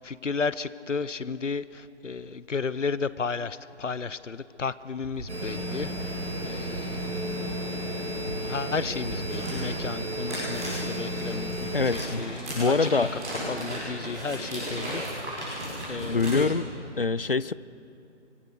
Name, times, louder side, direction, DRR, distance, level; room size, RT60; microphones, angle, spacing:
voice 1, 0.0-7.1 8.4-13.2 13.5-15.0 15.3-15.6 15.9-16.5, left 5 dB, 85° left, 17 dB, 0.8 m, -33 dB
sound 1, 5.0-6.9 7.3-9.3, right 2 dB, 5° left, 1.7 m, -42 dB
sound 2, 5.3-12.1, equal, 65° right, 5.1 m, -33 dB
sound 3, 9.0-16.3, right 1 dB, 10° right, 6.9 m, -35 dB
voice 2, 11.7-12.2 12.5-13.1 16.1-16.7 17.0-17.5, left 4 dB, 50° left, 20 dB, 0.4 m, -24 dB
25.0 x 18.5 x 6.7 m, 2.7 s
figure-of-eight pair, 170°, 36 cm